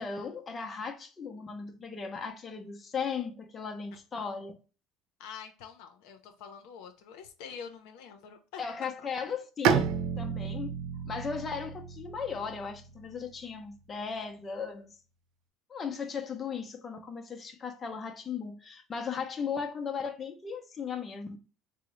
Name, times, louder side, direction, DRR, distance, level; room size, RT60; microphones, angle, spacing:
voice 1, 0.0-4.5 8.6-10.7 11.1-14.9 15.7-21.4, left 6 dB, 30° left, 0.6 m, -37 dB
voice 2, 5.2-9.1, left 7 dB, 80° left, 0.6 m, -46 dB
Bowed string instrument, 9.6-13.3, right 6 dB, 65° right, 0.4 m, -31 dB
3.7 x 2.0 x 3.0 m
supercardioid pair, 110°, 0 cm